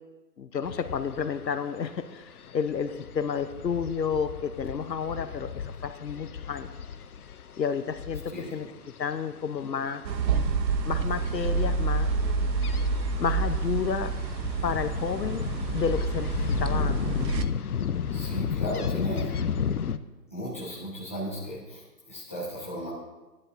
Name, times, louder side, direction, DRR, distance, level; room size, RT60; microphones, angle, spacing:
voice 1, 0.4-6.7 7.6-8.7 9.0-10.0 10.9-12.1 13.2-14.1 14.6-15.4 15.7-16.3 16.6-17.0, left 6 dB, 85° left, 11 dB, 0.9 m, -31 dB
sound 1, 0.6-20.0, left 7 dB, 65° left, 0.6 m, -35 dB
sound 2, 10.0-17.5, right 4 dB, 85° right, 0.8 m, -28 dB
voice 2, 18.1-19.4 20.3-22.9, equal, 10° left, -10 dB, 0.9 m, -35 dB
13.5 x 10.5 x 2.6 m, 1.2 s
hypercardioid pair, 170°, 49 cm